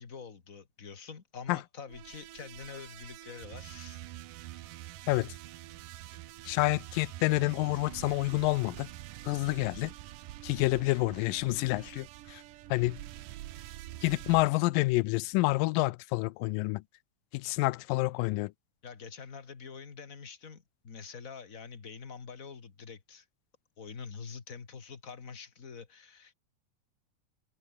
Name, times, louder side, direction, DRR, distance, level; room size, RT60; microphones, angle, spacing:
voice 1, 0.0-4.0 18.8-23.2 23.8-26.3, left 5 dB, 30° left, 1.6 m, -46 dB
sound 1, 1.9-14.5, right 15 dB, 75° right, 2.5 m, -46 dB
voice 2, 6.5-8.9 9.3-9.9 10.4-12.4 12.7-13.0 14.0-16.8 17.3-18.5, left 21 dB, 85° left, 2.3 m, -28 dB
omnidirectional pair, 3.9 m